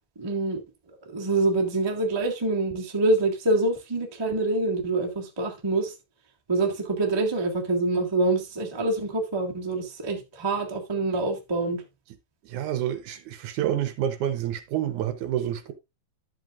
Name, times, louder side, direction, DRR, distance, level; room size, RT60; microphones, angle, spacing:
voice 1, 0.2-0.6 1.0-5.9 6.5-11.8, right 2 dB, 30° right, 0.4 m, -26 dB
voice 2, 12.4-15.7, right 11 dB, 70° right, 2.1 m, -28 dB
11.5 x 7.9 x 2.5 m
omnidirectional pair, 4.0 m